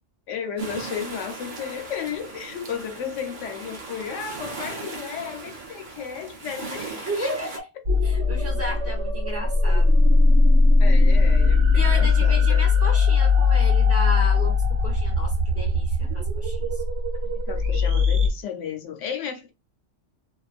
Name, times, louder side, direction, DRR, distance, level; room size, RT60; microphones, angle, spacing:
voice 1, 0.3-7.3 10.8-12.7 17.2-19.5, left 7 dB, 75° left, 1.0 m, -34 dB
sound 1, 0.6-7.6, right 3 dB, 50° right, 0.6 m, -38 dB
voice 2, 6.9-7.7 8.0-10.0 11.7-16.9, equal, 15° right, 0.7 m, -33 dB
sound 2, 7.9-18.3, left 3 dB, 70° right, 1.1 m, -19 dB
2.4 x 2.3 x 2.4 m
omnidirectional pair, 1.3 m